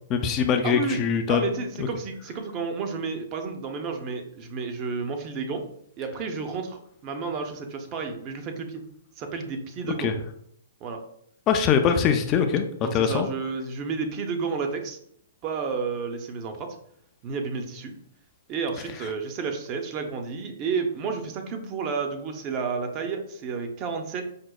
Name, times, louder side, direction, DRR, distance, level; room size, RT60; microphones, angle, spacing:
voice 1, 0.1-1.4 1.8-1.9 10.0-10.1 11.5-13.3, left 7 dB, 30° left, 6 dB, 0.3 m, -22 dB
voice 2, 0.6-1.0 1.3-5.6 6.0-8.8 9.2-10.2 10.8-11.0 12.8-15.0 15.4-16.8 17.2-17.9 18.5-24.3, right 5 dB, 35° right, 5 dB, 0.5 m, -31 dB
5.1 x 2.0 x 2.3 m, 0.70 s
hypercardioid pair, 125°, 0 cm